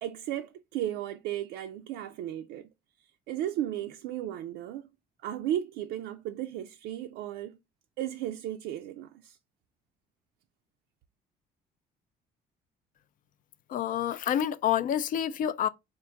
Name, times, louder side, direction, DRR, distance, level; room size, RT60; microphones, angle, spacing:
voice 1, 0.0-2.7 3.3-4.9 5.2-7.6 8.0-9.4, right 12 dB, 90° right, 0.4 m, -35 dB
voice 2, 13.7-15.7, left 10 dB, 55° left, 0.4 m, -28 dB
3.6 x 2.5 x 3.9 m
cardioid pair, 110°, 17 cm